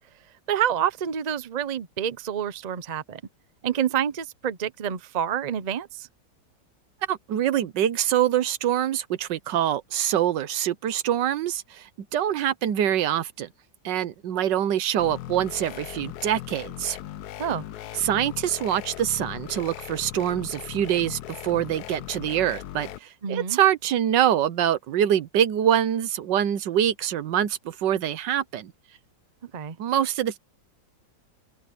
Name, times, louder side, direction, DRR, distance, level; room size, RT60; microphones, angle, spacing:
voice 1, 0.5-3.2 3.6-6.1 17.4-17.6 23.2-23.6 29.4-29.8, right 9 dB, 40° right, 0.5 m, -28 dB
voice 2, 7.1-13.5 13.8-17.0 18.0-28.7 29.8-30.4, right 10 dB, 85° right, 1.6 m, -25 dB
sound 1, 15.0-23.0, left 12 dB, 70° left, 1.2 m, -38 dB
omnidirectional pair, 1.9 m